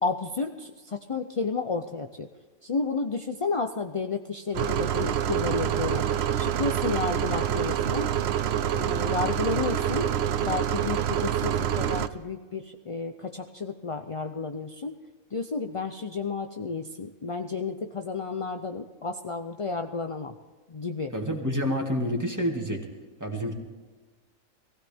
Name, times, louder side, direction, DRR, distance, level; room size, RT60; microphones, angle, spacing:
voice 1, 0.0-2.3 2.6-6.0 6.4-8.1 8.7-10.1 10.4-15.0 15.3-20.3 20.7-21.1, left 4 dB, 40° left, 6 dB, 0.5 m, -31 dB
sound 1, 4.5-12.1, right 10 dB, 60° right, 0.8 m, -26 dB
voice 2, 21.1-22.8 23.2-23.5, equal, 10° right, 0 dB, 2.2 m, -28 dB
19.5 x 16.0 x 3.5 m, 1.3 s
omnidirectional pair, 1.5 m